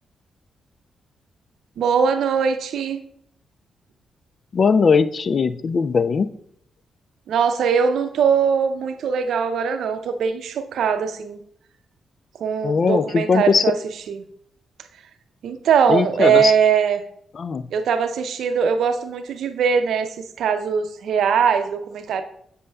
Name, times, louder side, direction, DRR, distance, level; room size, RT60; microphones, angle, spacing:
voice 1, 1.8-3.0 7.3-11.4 12.4-13.7 14.1-14.2 15.4-17.0 17.7-22.2, right 6 dB, 75° right, 9 dB, 0.5 m, -21 dB
voice 2, 4.5-6.3 12.6-13.7 15.9-16.5 17.3-17.7, left 5 dB, 55° left, 14 dB, 0.3 m, -19 dB
7.4 x 6.7 x 2.3 m, 0.69 s
hypercardioid pair, 45°, 0 cm